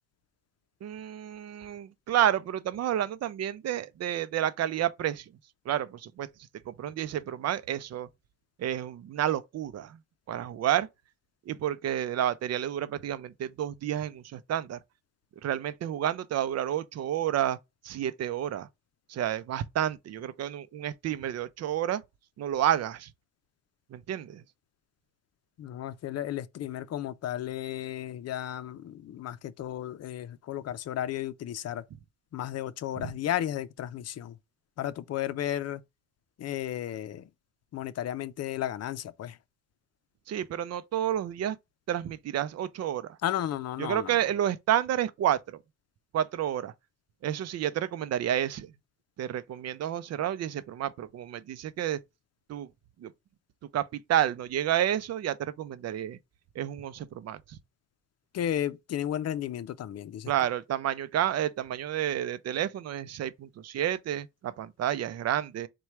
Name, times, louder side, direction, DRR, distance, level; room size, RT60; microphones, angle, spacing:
voice 1, 0.8-5.3 5.7-6.3 6.7-8.1 8.6-10.0 10.3-10.9 11.5-14.8 15.4-17.6 17.8-18.7 19.1-22.0 22.4-23.1 23.9-24.4 32.9-33.1 40.3-41.6 41.9-43.1 43.8-45.6 46.1-46.7 47.2-48.7 49.2-52.0 52.5-52.7 53.0-53.1 53.7-56.2 56.6-57.4 60.3-65.7, right 11 dB, 55° right, 0.5 m, -30 dB
voice 2, 25.6-31.8 32.3-34.3 34.8-35.8 36.4-37.2 37.7-39.4 43.2-44.2 58.3-60.3, left 11 dB, 55° left, 0.6 m, -33 dB
4.2 x 2.3 x 4.6 m
cardioid pair, 90°, 30 cm